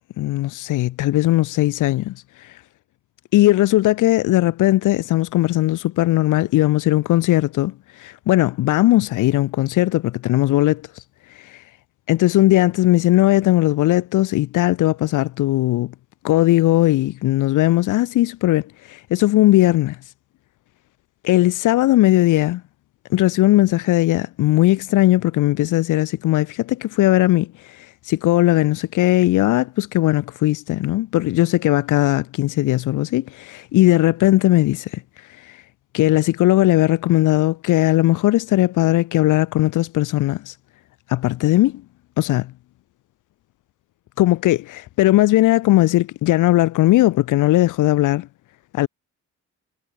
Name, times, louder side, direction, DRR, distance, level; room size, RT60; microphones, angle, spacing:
voice 1, 0.2-2.6 3.3-10.8 11.3-11.6 12.1-15.9 16.2-20.0 21.2-22.6 23.1-35.0 35.4-35.6 35.9-40.5 41.1-41.8 42.2-42.5 44.2-48.3 48.7-48.9, left 16 dB, 85° left, 1.5 m, -18 dB
cardioid pair, 90°, 30 cm